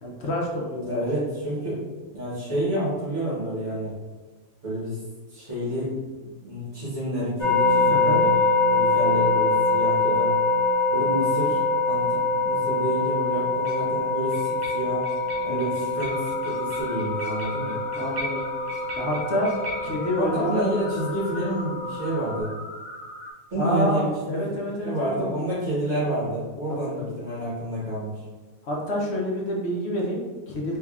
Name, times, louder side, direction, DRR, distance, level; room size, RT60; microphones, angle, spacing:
voice 1, 0.0-1.0 7.9-8.2 15.5-15.7 18.0-18.4 19.0-19.5 19.8-20.6 23.6-25.1 26.9-27.1 28.6-30.8, equal, 55° left, -2 dB, 0.9 m, -28 dB
voice 2, 0.8-4.0 4.6-5.0 5.3-5.9 6.2-8.4 8.7-10.4 10.9-15.0 15.4-17.8 20.1-22.5 23.5-28.2, equal, 55° right, -9 dB, 1.4 m, -29 dB
sound 1, 7.4-22.4, left 3 dB, 75° left, 1.2 m, -24 dB
sound 2, 13.6-13.9 14.3-20.1, equal, 75° right, 1.1 m, -39 dB
sound 3, 15.9-23.3, equal, 30° left, 0.4 m, -40 dB
3.4 x 3.3 x 2.4 m, 1.3 s
omnidirectional pair, 1.5 m